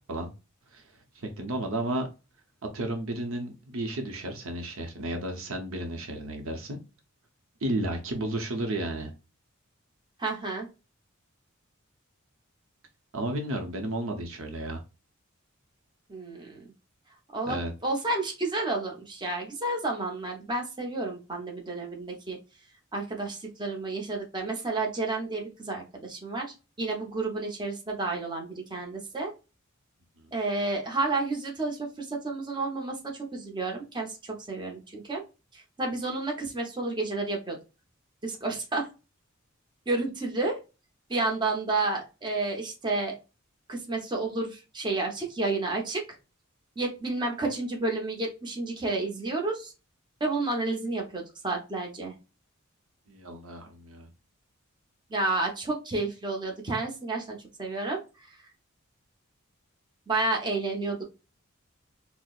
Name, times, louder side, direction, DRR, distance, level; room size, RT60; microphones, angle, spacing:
voice 1, 1.1-2.1 2.7-6.8 7.6-9.1 13.1-14.8 17.4-17.7 30.2-30.3 53.1-54.1, right 1 dB, 70° right, 4 dB, 0.8 m, -33 dB
voice 2, 10.2-10.7 16.1-16.7 17.3-22.4 22.9-29.3 30.3-35.2 35.5-37.6 38.2-38.9 39.9-40.6 41.1-43.1 43.7-46.0 46.8-49.7 50.2-52.1 55.1-58.0 60.1-61.0, right 2 dB, 20° right, 0 dB, 0.9 m, -31 dB
4.3 x 2.1 x 2.4 m, 0.29 s
head